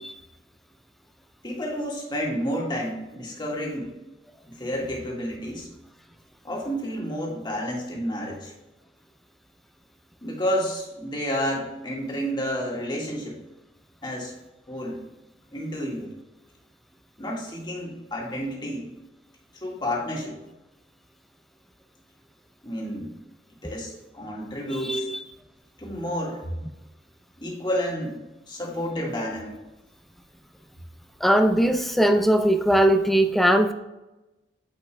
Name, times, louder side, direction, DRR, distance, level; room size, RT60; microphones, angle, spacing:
voice 1, 1.4-3.9 4.5-5.7 6.4-8.5 10.2-13.4 14.0-14.3 14.7-15.0 15.5-16.1 17.2-18.9 19.6-20.4 22.6-23.2 23.6-25.1 25.8-26.4 27.4-28.2 28.5-29.6, equal, 25° left, -2 dB, 1.7 m, -30 dB
voice 2, 24.7-25.2 31.2-33.7, right 1 dB, ahead, 6 dB, 0.4 m, -20 dB
8.9 x 5.8 x 2.2 m, 1.0 s
head